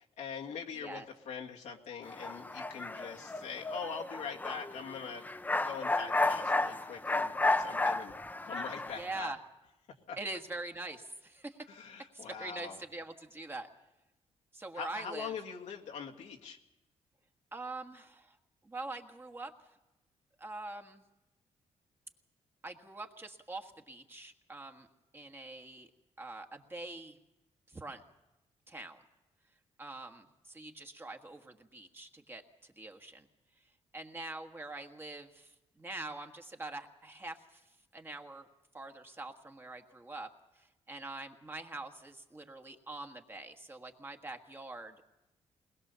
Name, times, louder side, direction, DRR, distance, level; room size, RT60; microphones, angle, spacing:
voice 1, 0.0-5.3 5.5-8.2 8.4-9.3 10.1-10.2 11.7-12.8 14.7-16.6, left 6 dB, 85° left, 0 dB, 2.0 m, -43 dB
voice 2, 0.7-1.1 9.0-9.4 10.2-11.6 12.1-13.7 14.5-15.3 17.5-18.4 18.6-19.5 20.4-21.0 22.6-24.9 25.1-25.9 26.2-27.2 27.7-28.0 28.7-29.0 29.8-33.3 33.9-37.6 37.9-38.5 38.7-40.3 40.5-45.1, right 2 dB, 20° right, 5 dB, 1.5 m, -44 dB
sound 1, 2.1-9.2, left 2 dB, 15° left, 0.7 m, -32 dB
21.5 x 20.5 x 6.9 m, 0.97 s
cardioid pair, 115°, 12 cm